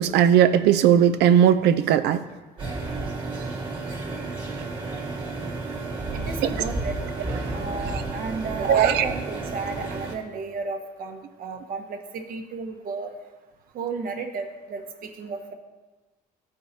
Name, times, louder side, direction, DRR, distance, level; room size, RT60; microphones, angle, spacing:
voice 1, 0.0-2.2 8.7-9.0, right 9 dB, 80° right, 11 dB, 0.4 m, -18 dB
sound 1, 2.6-10.1, right 3 dB, 30° right, 1.6 m, -31 dB
voice 2, 6.1-7.0 7.5-13.1 13.7-14.8 15.2-15.5, right 3 dB, 60° right, 5 dB, 1.0 m, -32 dB
14.0 x 4.6 x 2.8 m, 1.2 s
cardioid pair, 110°, 17 cm